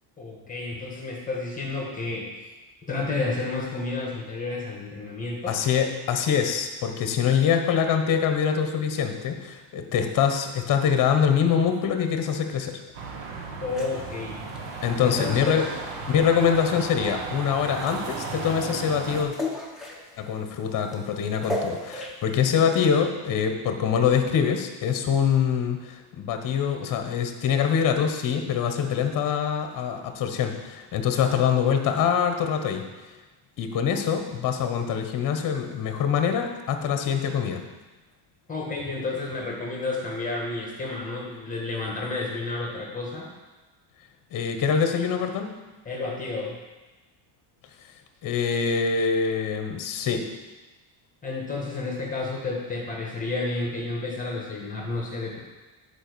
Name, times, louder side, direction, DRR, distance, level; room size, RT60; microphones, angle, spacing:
voice 1, 0.2-2.3 2.9-5.6 13.6-14.4 15.0-15.6 38.5-43.3 45.9-46.6 51.2-55.4, left 3 dB, 15° left, -2 dB, 1.8 m, -31 dB
voice 2, 5.5-12.8 14.8-15.6 16.1-19.3 20.2-32.8 33.6-37.6 44.3-45.6 48.2-50.3, left 7 dB, 40° left, 6 dB, 1.1 m, -24 dB
sound 1, 12.9-19.2, right 4 dB, 85° right, 1.6 m, -35 dB
sound 2, 13.7-22.4, left 1 dB, ahead, 1.0 m, -38 dB
9.0 x 4.8 x 6.9 m, 1.2 s
cardioid pair, 150°, 49 cm